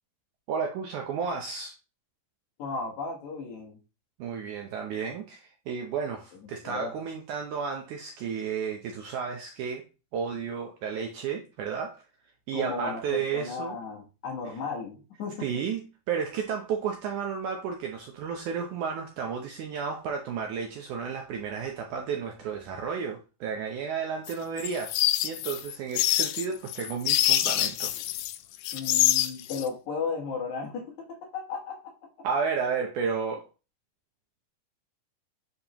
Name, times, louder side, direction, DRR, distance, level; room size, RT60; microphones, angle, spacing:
voice 1, 0.5-1.7 4.2-9.8 10.1-12.0 12.5-13.8 15.4-24.9 25.2-27.9 32.2-33.5, right 6 dB, 75° right, 1.9 m, -32 dB
voice 2, 2.6-3.8 6.6-6.9 12.5-15.5 28.7-31.9, left 5 dB, 60° left, 2.3 m, -35 dB
sound 1, 24.3-28.4 28.6-29.6, left 14 dB, 85° left, 2.3 m, -26 dB
8.7 x 4.1 x 2.9 m
omnidirectional pair, 4.3 m